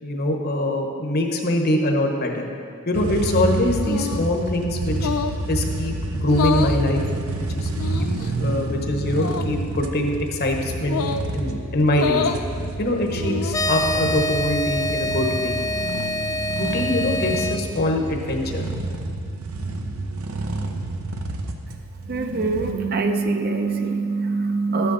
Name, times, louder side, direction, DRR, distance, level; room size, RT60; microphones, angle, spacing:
voice 1, 0.0-2.5 2.8-5.1 5.5-7.1 7.5-8.1 8.4-11.0 11.3-12.3 12.8-15.6 16.5-18.6, left 1 dB, 50° left, 3 dB, 1.2 m, -23 dB
sound 1, 2.9-22.7, right 2 dB, 80° right, 0.8 m, -29 dB
sound 2, 3.8-4.3 4.9-5.4 6.3-6.8 7.8-8.3 9.1-9.5 10.8-11.3 11.9-12.4 13.1-13.7, left 6 dB, 90° left, 0.5 m, -27 dB
sound 3, 13.5-17.6, left 1 dB, 15° left, 0.4 m, -26 dB
voice 2, 22.0-24.9, right 3 dB, 50° right, 5 dB, 0.7 m, -23 dB
12.5 x 9.3 x 4.1 m, 2.3 s
head